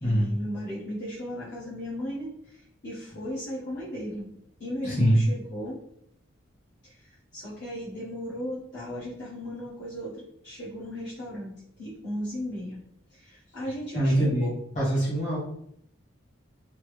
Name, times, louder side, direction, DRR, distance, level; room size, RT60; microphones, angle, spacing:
voice 1, 0.0-4.3 4.6-5.8 6.8-7.0 7.3-12.8 13.1-14.6, equal, 55° left, -10 dB, 1.2 m, -36 dB
voice 2, 4.8-5.2 13.9-14.5 14.7-15.4, equal, 35° left, -7 dB, 1.3 m, -23 dB
3.3 x 2.0 x 3.2 m, 0.69 s
head